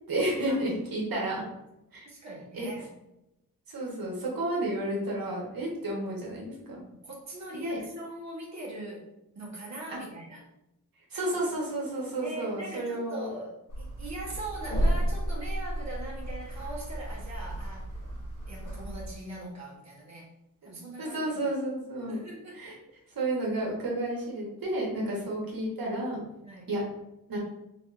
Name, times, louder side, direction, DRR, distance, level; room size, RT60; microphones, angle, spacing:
voice 1, 0.1-1.4 1.9-2.1 2.5-2.7 3.7-6.8 7.5-7.8 11.1-13.3 21.0-22.2 22.5-22.7 23.1-26.2 26.7-26.8 27.3-27.4, right 1 dB, 85° right, -3 dB, 1.2 m, -31 dB
voice 2, 2.0-2.9 6.8-9.1 9.3-10.4 12.2-18.0 18.5-20.3 20.6-21.4 22.1-22.7 25.0-25.3 26.4-26.7, right 1 dB, 50° right, -5 dB, 1.2 m, -41 dB
sound 1, 13.7-19.1, right 1 dB, 65° left, 1.2 m, -32 dB
3.5 x 3.4 x 2.5 m, 0.89 s
wide cardioid pair, 150°, 34 cm